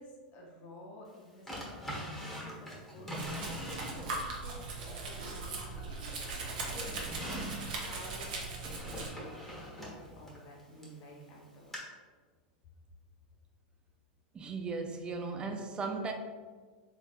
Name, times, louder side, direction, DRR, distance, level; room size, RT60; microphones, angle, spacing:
voice 1, 0.0-9.5 9.8-11.8, left 1 dB, 45° left, -2 dB, 0.8 m, -52 dB
Drawer open or close, 1.5-4.4 4.9-5.9 6.3-11.0 11.7-11.8, equal, 5° left, 1.1 m, -43 dB
Domestic sounds home sounds, 3.1-9.1, right 3 dB, 70° right, 0.9 m, -39 dB
Rattle, 5.1-10.0, left 2 dB, 75° left, 0.8 m, -57 dB
voice 2, 14.3-16.1, right 4 dB, 20° right, 4 dB, 0.4 m, -36 dB
4.0 x 3.4 x 2.5 m, 1.5 s
hypercardioid pair, 105°, 5 cm